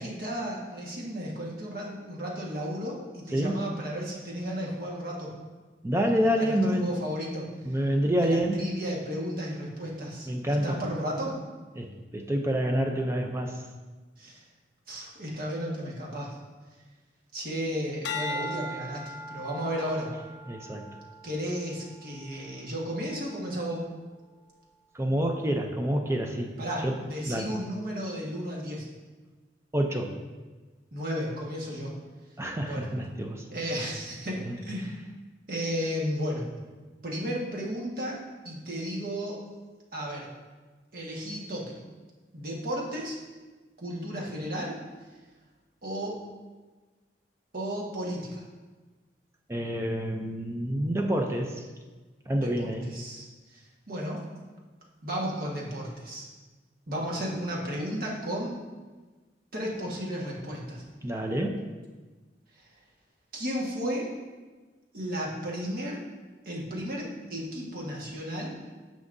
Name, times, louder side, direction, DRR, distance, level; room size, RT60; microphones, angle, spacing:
voice 1, 0.0-5.3 6.4-7.5 8.2-11.4 14.2-14.4 14.9-16.4 17.3-20.1 21.2-23.9 26.6-28.9 30.9-31.9 32.6-32.9 33.5-35.0 35.5-36.5 37.0-39.4 39.9-40.3 40.9-41.7 42.3-43.2 43.8-44.8 45.8-46.2 47.5-48.4 52.4-54.2 55.0-56.3 56.9-58.5 59.5-60.8 63.3-64.1 64.9-66.0 66.4-68.6, equal, 55° right, -3 dB, 1.5 m, -34 dB
voice 2, 3.3-3.6 5.8-6.9 7.6-8.6 10.3-10.8 11.8-13.6 20.5-20.9 24.9-26.5 26.8-26.9 27.3-27.5 29.7-30.1 32.4-33.4 34.4-34.6 49.5-51.7 52.3-52.9 61.0-61.6, equal, 15° right, 3 dB, 0.5 m, -27 dB
sound 1, 18.0-22.5 23.1-23.5, left 1 dB, 85° left, 0.7 m, -39 dB
9.5 x 6.3 x 2.6 m, 1.3 s
head